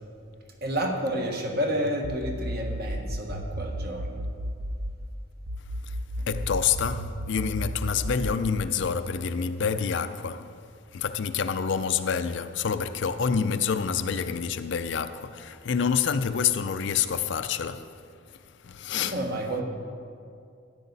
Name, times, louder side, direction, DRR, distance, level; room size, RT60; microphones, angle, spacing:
voice 1, 0.6-4.3 6.2-6.3 19.0-19.6, equal, 50° right, 1.3 m, -30 dB
sound 1, 2.0-5.0 5.5-8.5, equal, 75° right, 0.7 m, -33 dB
voice 2, 6.3-10.6 10.9-18.0 18.4-19.2, left 6 dB, 60° left, 0.4 m, -27 dB
13.5 x 9.9 x 4.0 m
head